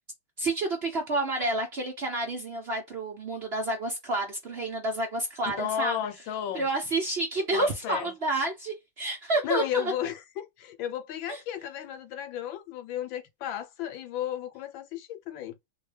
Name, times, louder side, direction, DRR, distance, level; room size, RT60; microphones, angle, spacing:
voice 1, 0.4-6.0 6.5-9.9 11.3-11.4, right 2 dB, 90° right, 0.5 m, -29 dB
voice 2, 5.4-6.7 7.5-8.1 9.4-15.6, left 10 dB, 70° left, 1.3 m, -33 dB
4.4 x 2.3 x 3.3 m
omnidirectional pair, 2.4 m